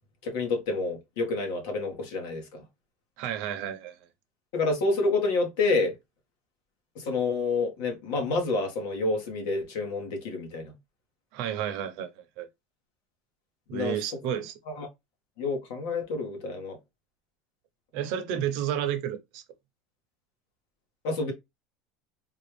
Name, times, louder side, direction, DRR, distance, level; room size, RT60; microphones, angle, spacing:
voice 1, 0.2-2.6 4.5-6.0 6.9-10.7 13.7-14.0 14.7-14.9 15.4-16.8 21.0-21.3, left 3 dB, 70° left, 1.4 m, -28 dB
voice 2, 3.2-4.0 11.3-12.1 12.4-12.5 13.7-14.5 17.9-19.4, right 10 dB, 50° right, 0.7 m, -31 dB
4.0 x 2.4 x 3.2 m
cardioid pair, 180°, 0 cm